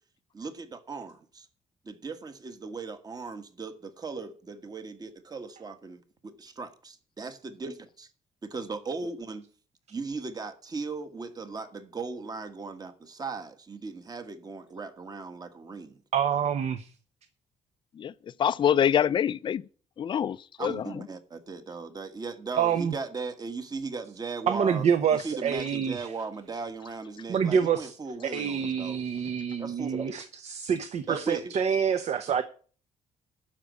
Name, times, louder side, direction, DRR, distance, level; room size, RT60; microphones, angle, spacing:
voice 1, 0.3-1.5 1.8-8.1 8.4-9.5 9.9-16.0 20.6-24.8 25.1-29.0 29.6-30.1 31.1-31.4, right 4 dB, 30° right, 1.5 m, -37 dB
voice 2, 16.1-16.9 22.6-22.9 24.5-26.1 27.3-27.9 28.3-32.4, right 7 dB, 60° right, 0.9 m, -27 dB
voice 3, 18.0-19.6 20.0-21.1, left 9 dB, 40° left, 0.4 m, -26 dB
12.0 x 5.1 x 8.3 m
cardioid pair, 115°, 13 cm